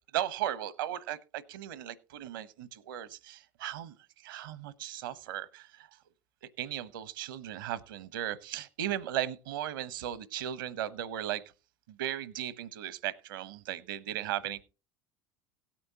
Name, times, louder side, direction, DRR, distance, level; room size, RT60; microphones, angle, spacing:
voice 1, 0.1-3.9 4.2-5.9 6.6-11.4 11.9-14.6, right 12 dB, 75° right, 0.9 m, -36 dB
17.0 x 8.7 x 2.9 m
hypercardioid pair, 70°, 11 cm